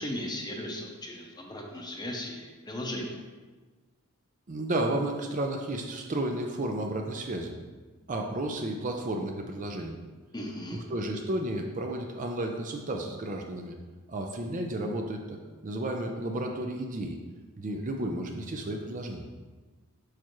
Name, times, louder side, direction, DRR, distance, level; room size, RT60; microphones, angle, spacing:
voice 1, 0.0-3.2 10.3-10.8, left 1 dB, 20° left, 1 dB, 0.8 m, -37 dB
voice 2, 4.5-7.5 8.1-10.0 10.7-13.8 14.1-17.2 17.6-19.3, right 1 dB, 35° right, 3 dB, 0.5 m, -32 dB
6.5 x 5.7 x 3.1 m, 1.3 s
head